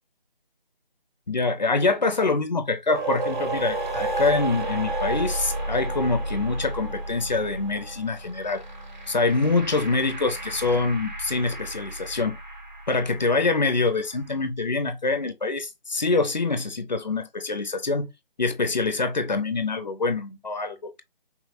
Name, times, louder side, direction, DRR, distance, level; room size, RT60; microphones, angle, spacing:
voice 1, 1.3-8.6 9.1-12.4 12.9-18.1 18.4-21.0, left 3 dB, 50° left, 0.7 m, -25 dB
sound 1, 2.9-14.0, right 2 dB, 50° right, 1.2 m, -32 dB
sound 2, 5.2-11.1, right 2 dB, 10° right, 0.6 m, -55 dB
5.7 x 2.3 x 2.4 m
figure-of-eight pair, 160°, 29 cm